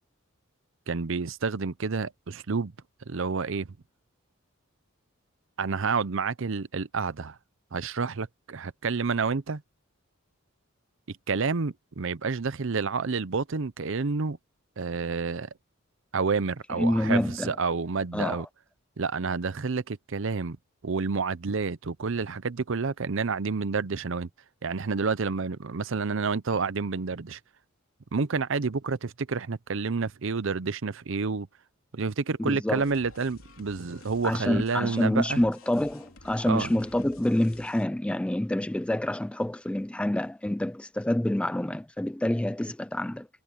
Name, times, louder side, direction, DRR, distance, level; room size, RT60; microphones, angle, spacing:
voice 1, 0.9-2.7 3.1-3.7 5.6-7.4 7.7-9.6 11.3-14.4 14.8-15.5 16.1-18.5 19.0-20.6 20.8-24.3 24.6-27.4 28.1-31.5 31.9-35.4 36.5-36.7, right 4 dB, 65° right, 0.7 m, -29 dB
voice 2, 16.8-17.5 18.1-18.4 32.4-32.8 34.2-43.3, left 1 dB, 5° left, 0.3 m, -27 dB
sound 1, 32.7-37.9, left 2 dB, 80° left, 3.3 m, -52 dB
head